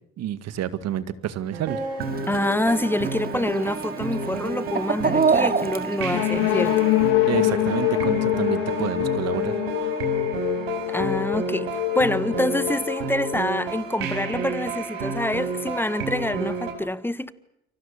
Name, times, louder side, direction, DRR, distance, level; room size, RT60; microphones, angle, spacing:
voice 1, 0.2-1.8 7.3-9.9, right 11 dB, 60° right, 1.9 m, -29 dB
sound 1, 1.5-16.7, right 4 dB, 90° right, 4.9 m, -31 dB
Chicken rooster, 2.0-7.1, right 5 dB, 30° right, 2.4 m, -28 dB
voice 2, 2.3-6.9 10.9-17.3, left 1 dB, 5° left, 1.3 m, -26 dB
sound 2, 6.1-13.8, left 18 dB, 80° left, 1.5 m, -25 dB
29.5 x 24.0 x 7.3 m
hypercardioid pair, 70°, 30 cm